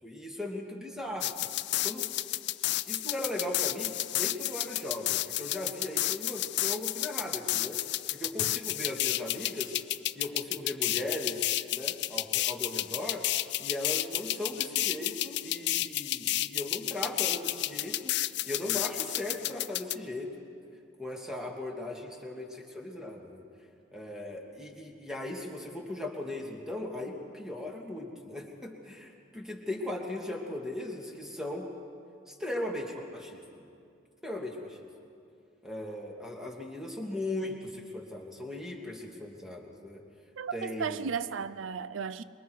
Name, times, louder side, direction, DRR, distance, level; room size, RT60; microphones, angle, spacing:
voice 1, 0.0-1.5 1.8-2.1 2.9-7.8 8.1-9.7 10.2-13.3 13.6-18.1 18.5-20.3 21.0-23.4 23.9-31.7 32.3-33.6 34.2-34.8 35.6-40.0 40.5-41.1, left 1 dB, 5° right, 2.3 m, -38 dB
sound 1, 1.2-20.0, left 15 dB, 60° left, 0.5 m, -31 dB
voice 2, 40.4-42.2, right 6 dB, 85° right, 0.5 m, -34 dB
25.5 x 23.0 x 4.7 m
head